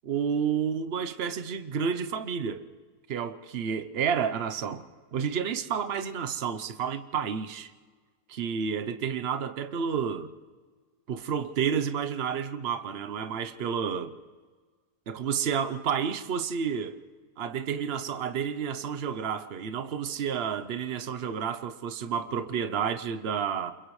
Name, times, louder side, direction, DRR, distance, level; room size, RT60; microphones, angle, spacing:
voice 1, 0.0-2.7 3.1-4.8 5.1-7.7 8.3-10.3 11.1-14.2 15.1-17.0 17.4-23.7, right 7 dB, 50° right, 0.9 m, -30 dB
29.0 x 28.0 x 3.2 m
omnidirectional pair, 1.6 m